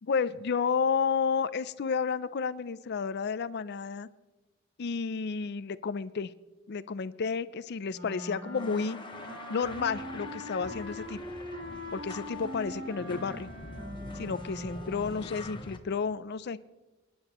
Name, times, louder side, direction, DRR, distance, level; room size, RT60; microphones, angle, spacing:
voice 1, 0.0-4.1 4.8-6.3 6.7-9.0 9.5-11.2 11.9-13.5 14.2-16.6, left 5 dB, 55° left, 16 dB, 0.5 m, -31 dB
Wind instrument woodwind instrument, 7.9-15.3, equal, 50° right, 2.9 m, -42 dB
sound 1, 8.6-15.8, left 2 dB, 25° left, 0.9 m, -44 dB
25.5 x 10.5 x 3.0 m, 1.1 s
head